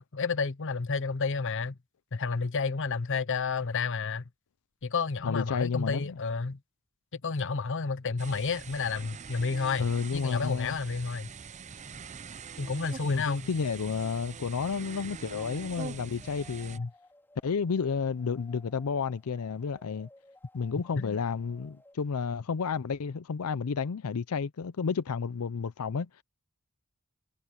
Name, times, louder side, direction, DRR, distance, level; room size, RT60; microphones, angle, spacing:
voice 1, 0.0-1.8 2.1-4.2 4.8-6.6 7.1-9.9 10.1-11.3 12.6-13.5 16.8-16.9 21.0-21.2, left 4 dB, 60° left, 0.8 m, -31 dB
voice 2, 5.2-6.2 9.8-10.8 13.0-16.8 17.4-20.1 20.5-26.2, left 5 dB, 85° left, 0.5 m, -31 dB
sound 1, 8.2-16.8, right 5 dB, 30° right, 0.5 m, -44 dB
sound 2, 15.4-21.9, left 2 dB, 10° left, 4.0 m, -59 dB
head